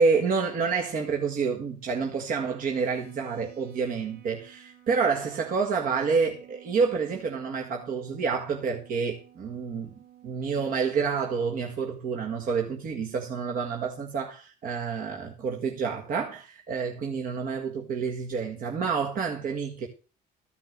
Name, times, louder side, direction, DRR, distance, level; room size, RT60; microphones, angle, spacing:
voice 1, 0.0-9.9 10.2-19.9, right 5 dB, 55° right, 1.7 m, -28 dB
sound 1, 2.7-10.8, right 12 dB, 85° right, 3.6 m, -53 dB
14.0 x 6.0 x 6.6 m
cardioid pair, 110°, 17 cm